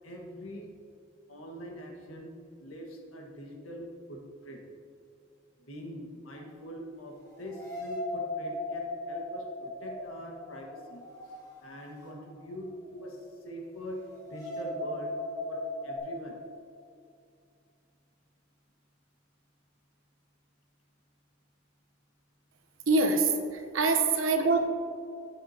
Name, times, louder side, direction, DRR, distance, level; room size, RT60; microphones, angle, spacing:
voice 1, 0.0-0.7 1.3-2.3 2.6-4.6 5.6-15.2 15.5-16.4, equal, 80° left, 0 dB, 1.6 m, -43 dB
sound 1, 6.4-6.5 7.3-12.3 12.6-12.7 14.1-16.0, left 1 dB, 15° left, 2.0 m, -38 dB
voice 2, 22.9-24.7, right 3 dB, 75° right, 6 dB, 0.9 m, -25 dB
15.0 x 7.4 x 2.8 m, 2.5 s
head